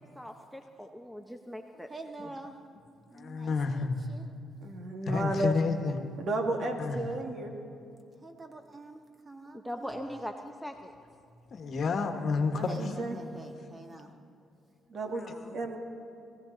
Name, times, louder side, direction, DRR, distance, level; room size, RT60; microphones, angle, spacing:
voice 1, 0.0-1.9 2.2-2.3 6.5-6.7 9.5-10.9 15.1-15.5, equal, ahead, 5 dB, 0.7 m, -41 dB
voice 2, 1.9-2.5 3.1-4.2 8.2-10.2 12.6-14.1, right 2 dB, 30° right, 3 dB, 1.6 m, -47 dB
voice 3, 3.1-4.0 5.0-6.0 6.8-7.0 11.5-13.0, left 4 dB, 55° left, 6 dB, 1.3 m, -30 dB
voice 4, 4.6-5.5 6.2-7.5 12.5-13.2 14.9-15.2 15.5-15.8, right 2 dB, 60° right, 3 dB, 1.9 m, -33 dB
19.5 x 15.5 x 3.9 m, 2.5 s
cardioid pair, 90°, 0 cm